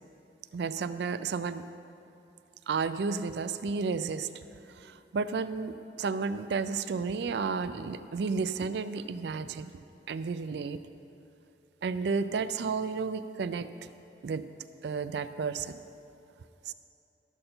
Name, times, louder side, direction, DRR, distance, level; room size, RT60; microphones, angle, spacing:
voice 1, 0.5-1.6 2.7-4.3 4.8-9.7 10.1-10.8 11.8-13.9 14.2-14.4 14.8-15.8 16.7-16.8, right 5 dB, 75° right, 12 dB, 0.4 m, -32 dB
12.5 x 4.3 x 6.6 m, 2.7 s
head